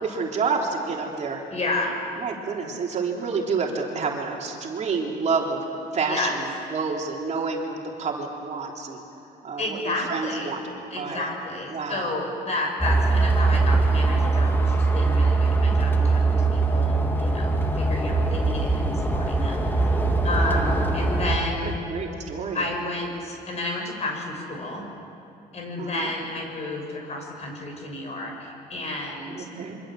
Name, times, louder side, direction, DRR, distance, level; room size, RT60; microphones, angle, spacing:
voice 1, 0.0-1.4 2.2-5.6 5.9-9.0 9.4-10.6 11.0-11.3 11.7-12.3 20.0-21.0 21.6-22.6 25.8-26.1 29.3-29.8, right 4 dB, 45° right, 0 dB, 3.6 m, -29 dB
voice 2, 1.5-2.0 6.1-6.4 9.6-10.6 10.9-21.8 22.5-24.9 25.5-29.4, left 2 dB, 40° left, 2 dB, 6.9 m, -31 dB
sound 1, 12.8-21.4, right 3 dB, 10° left, 2.3 m, -21 dB
27.5 x 24.5 x 7.8 m, 2.8 s
cardioid pair, 110°, 17 cm